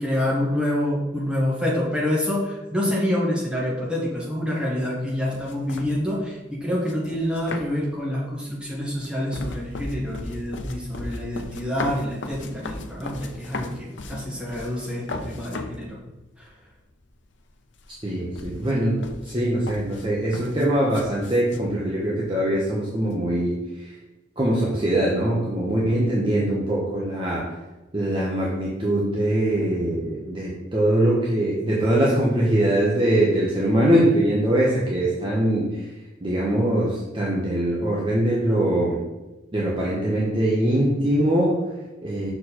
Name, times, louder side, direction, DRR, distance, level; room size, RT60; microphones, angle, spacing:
voice 1, 0.0-16.0, left 1 dB, 5° right, -6 dB, 1.9 m, -27 dB
sound 1, 5.1-6.1 6.8-8.0 8.6-15.9 16.4-16.5 16.8-17.5 17.8-21.7, left 2 dB, 75° left, 0.6 m, -36 dB
voice 2, 18.0-19.0 19.2-24.0 24.4-27.6 27.9-35.9 36.2-39.0 39.5-42.3, right 1 dB, 25° right, -5 dB, 1.0 m, -22 dB
6.2 x 4.5 x 4.3 m, 1.0 s
head